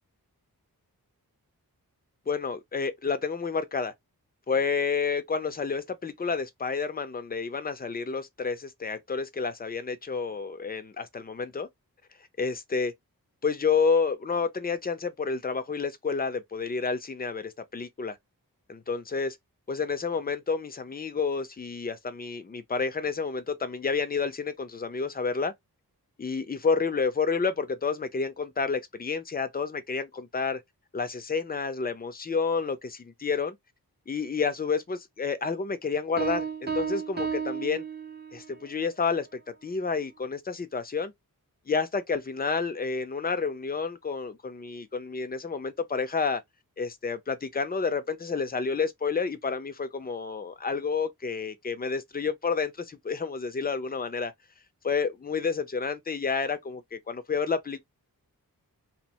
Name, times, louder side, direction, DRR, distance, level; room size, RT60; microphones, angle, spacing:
voice 1, 2.3-3.9 4.5-11.7 12.4-12.9 13.4-18.2 18.7-19.4 19.7-25.5 26.2-30.6 30.9-33.6 34.1-37.8 38.3-41.1 41.7-46.4 46.8-54.3 54.8-57.8, left 5 dB, 25° left, 0.5 m, -30 dB
sound 1, 36.2-38.6, right 6 dB, 25° right, 0.7 m, -32 dB
3.0 x 2.1 x 2.8 m
wide cardioid pair, 80°, 37 cm